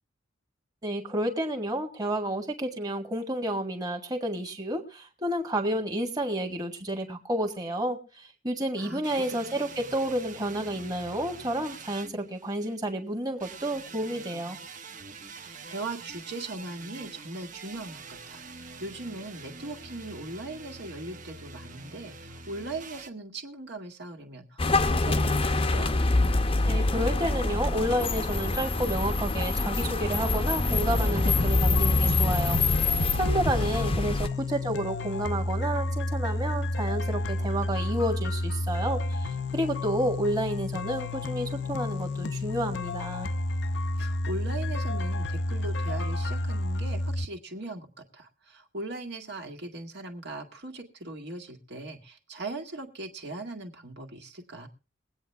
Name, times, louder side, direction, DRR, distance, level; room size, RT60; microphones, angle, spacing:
voice 1, 0.8-14.6 26.7-32.6 33.1-43.3, right 1 dB, 20° right, 2 dB, 1.8 m, -30 dB
voice 2, 8.8-9.4 9.7-9.9 15.3-26.0 33.5-34.2 44.0-54.7, right 2 dB, 60° right, 3 dB, 2.0 m, -40 dB
sound 1, 9.0-12.8 13.4-23.1, right 4 dB, 40° right, 1.1 m, -45 dB
sound 2, 24.6-34.3, left 2 dB, 30° left, 0.8 m, -25 dB
sound 3, 31.2-47.3, left 2 dB, 60° left, 0.7 m, -31 dB
22.0 x 8.7 x 3.5 m, 0.34 s
head